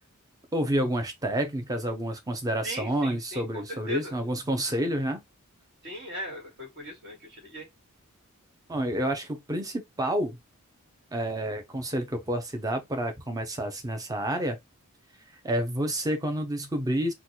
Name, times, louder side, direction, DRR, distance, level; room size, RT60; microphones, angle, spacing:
voice 1, 0.5-5.2 8.7-10.4 11.1-14.6 15.4-17.1, right 1 dB, 15° right, 0.5 m, -29 dB
voice 2, 2.6-4.1 5.8-7.7, left 1 dB, 50° right, 1.8 m, -38 dB
3.9 x 2.3 x 2.8 m
head